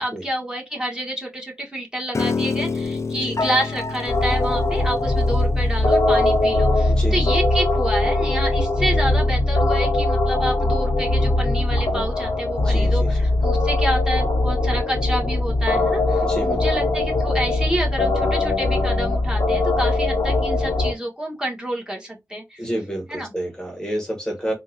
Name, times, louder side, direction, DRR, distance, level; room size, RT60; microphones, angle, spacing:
voice 1, 0.0-22.6 23.1-23.3, right 1 dB, 15° right, 1.3 m, -28 dB
Piano, 2.1-8.4, left 4 dB, 50° left, 0.4 m, -30 dB
sound 1, 4.1-20.9, left 2 dB, 85° left, 0.7 m, -20 dB
voice 2, 6.9-7.4 12.6-13.2 16.2-16.6 22.6-24.5, right 1 dB, 10° left, 1.0 m, -29 dB
3.6 x 2.3 x 2.6 m
wide cardioid pair, 60°, 6 cm